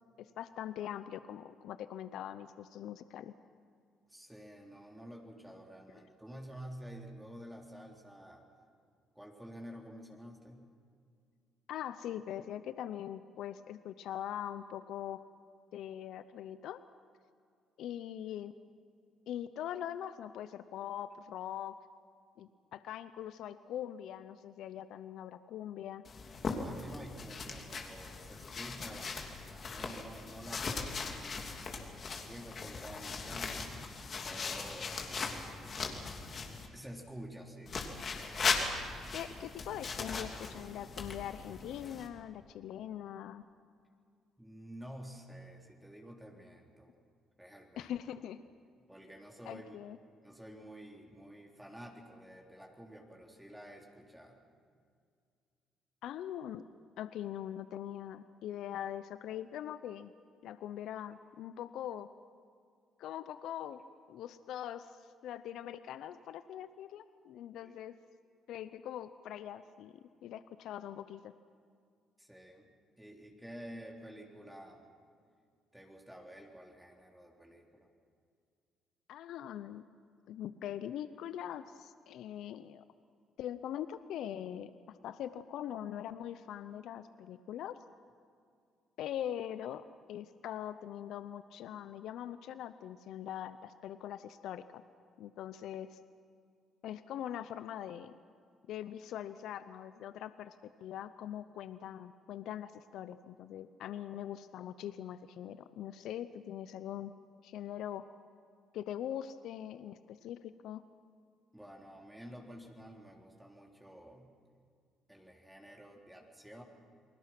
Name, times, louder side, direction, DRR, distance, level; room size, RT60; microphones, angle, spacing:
voice 1, 0.2-3.3 11.7-15.2 15.7-16.8 17.8-18.5 19.3-21.8 22.4-26.0 39.1-43.4 47.8-48.4 49.5-50.0 56.0-56.6 57.0-60.1 60.4-62.1 63.0-63.8 64.1-68.0 68.5-71.3 79.1-79.8 80.3-82.8 83.4-87.7 89.0-94.8 95.2-96.0 96.8-98.1 98.7-107.1 107.4-108.0 108.7-110.8, left 10 dB, 75° left, 13 dB, 0.7 m, -42 dB
voice 2, 4.1-8.4 9.1-10.7 26.6-31.4 32.0-33.7 34.2-35.4 36.7-37.8 44.4-47.0 47.4-47.9 48.9-49.8 50.2-54.4 67.6-67.7 72.2-72.7 73.0-74.9 75.7-77.9 82.1-82.2 111.5-114.3 115.1-116.6, equal, 5° right, 0 dB, 3.7 m, -50 dB
sound 1, 26.0-36.7 37.7-42.1, left 4 dB, 50° left, 3.1 m, -39 dB
29.0 x 20.5 x 6.1 m, 2.2 s
supercardioid pair, 60°, 0 cm